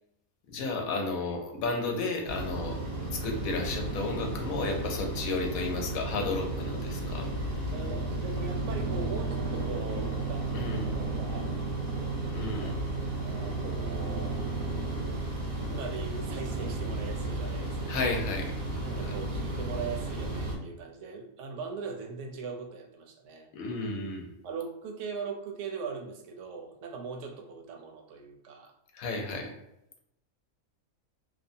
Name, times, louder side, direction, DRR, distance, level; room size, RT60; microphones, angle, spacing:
voice 1, 0.5-2.8 3.1-7.3 10.5-10.9 12.3-12.8 17.9-18.5 19.0-19.1 23.5-24.3 28.9-29.5, left 3 dB, 90° left, 2 dB, 1.1 m, -32 dB
sound 1, 2.2-20.6, right 2 dB, 90° right, 1.2 m, -33 dB
voice 2, 7.7-11.5 12.5-12.8 13.2-14.4 15.7-18.2 18.8-23.5 24.4-28.7, right 5 dB, 70° right, 3 dB, 0.8 m, -40 dB
2.8 x 2.1 x 2.6 m, 0.86 s
omnidirectional pair, 1.4 m